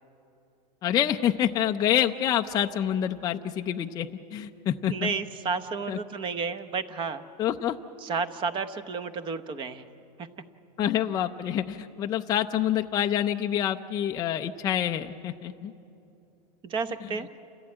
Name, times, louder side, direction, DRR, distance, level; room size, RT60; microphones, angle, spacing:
voice 1, 0.8-5.1 5.9-6.0 7.4-7.8 10.8-15.7, left 10 dB, 20° left, 4 dB, 0.5 m, -27 dB
voice 2, 4.9-7.2 8.0-9.8 10.2-10.3 16.6-17.3, right 5 dB, 25° right, 11 dB, 0.9 m, -31 dB
28.5 x 15.0 x 8.8 m, 2.8 s
supercardioid pair, 150°, 21 cm